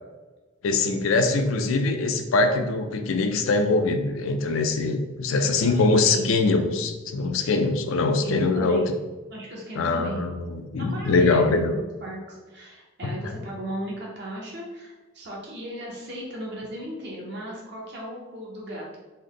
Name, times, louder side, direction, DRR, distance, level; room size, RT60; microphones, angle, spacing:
voice 1, 0.6-8.9 9.8-11.7 13.0-13.1, left 3 dB, 75° left, 6 dB, 0.4 m, -23 dB
voice 2, 5.5-6.3 7.4-7.6 8.2-8.9 9.3-10.2 10.8-19.0, right 1 dB, 55° right, -3 dB, 0.8 m, -36 dB
3.3 x 2.1 x 3.7 m, 1.2 s
head